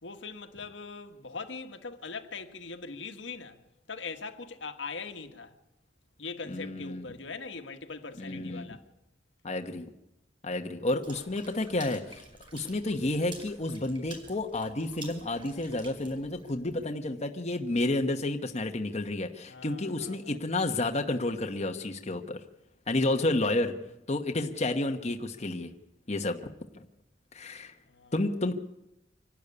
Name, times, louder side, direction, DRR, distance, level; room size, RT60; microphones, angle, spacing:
voice 1, 0.0-3.6 3.9-5.5 6.2-8.8 19.5-20.4 27.9-28.1, left 4 dB, 75° left, 1.6 m, -41 dB
voice 2, 6.5-7.1 8.2-8.7 9.4-9.9 10.4-12.2 12.5-22.4 22.9-23.7 24.1-25.7 26.1-26.4 26.7-26.9 27.3-27.7 28.1-28.5, left 2 dB, 35° left, 1.1 m, -30 dB
Water / Splash splatter, 11.0-16.8, right 3 dB, 25° right, 5.5 m, -50 dB
25.0 x 12.0 x 9.8 m
head